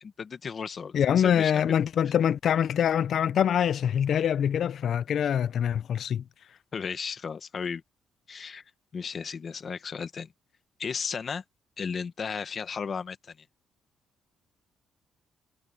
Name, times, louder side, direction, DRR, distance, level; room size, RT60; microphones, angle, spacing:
voice 1, 0.0-1.8 6.7-7.8 8.3-8.6 8.9-10.3 10.8-11.4 11.8-13.4, left 6 dB, 45° left, 1.7 m, -34 dB
voice 2, 0.9-6.2, left 9 dB, 65° left, 0.6 m, -24 dB
cardioid pair, 90°, 0 cm